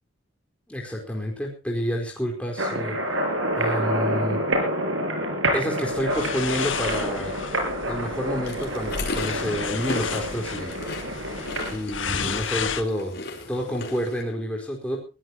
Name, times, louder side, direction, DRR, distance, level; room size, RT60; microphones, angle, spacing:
voice 1, 0.7-3.0 3.6-4.4 5.5-7.3 7.8-10.8 11.7-13.2 13.5-15.0, equal, 5° left, -1 dB, 4.6 m, -29 dB
sound 1, 2.6-11.8, right 1 dB, 85° right, 6.5 m, -28 dB
sound 2, 5.9-12.8, left 6 dB, 70° left, 1.6 m, -33 dB
sound 3, 8.5-14.2, left 3 dB, 55° left, 4.3 m, -36 dB
22.0 x 16.5 x 3.0 m, 0.32 s
head